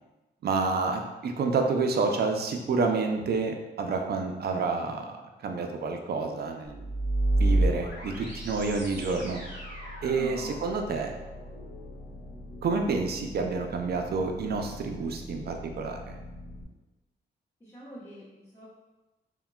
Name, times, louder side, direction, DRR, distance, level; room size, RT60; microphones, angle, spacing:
voice 1, 0.4-5.2 5.4-6.9 7.4-9.4 10.0-11.1 12.6-16.2, right 4 dB, 60° right, 4 dB, 0.4 m, -29 dB
sound 1, 6.7-16.6, right 1 dB, 80° left, 0.9 m, -33 dB
voice 2, 10.2-10.5 17.6-18.6, right 1 dB, 15° left, -11 dB, 0.7 m, -43 dB
3.7 x 2.1 x 2.2 m, 1.1 s
cardioid pair, 100°, 19 cm